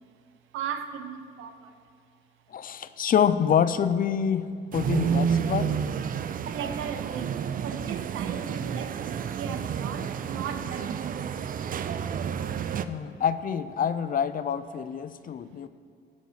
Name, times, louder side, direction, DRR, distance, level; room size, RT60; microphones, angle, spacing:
voice 1, 0.5-1.7 6.5-11.3, right 7 dB, 90° right, 8 dB, 0.8 m, -37 dB
voice 2, 2.5-4.5 4.7-5.8 12.9-15.7, left 8 dB, 45° left, 14 dB, 0.4 m, -26 dB
sound 1, 4.7-12.9, right 7 dB, 45° right, 0.4 m, -30 dB
15.5 x 5.3 x 5.0 m, 2.2 s
cardioid pair, 100°, 20 cm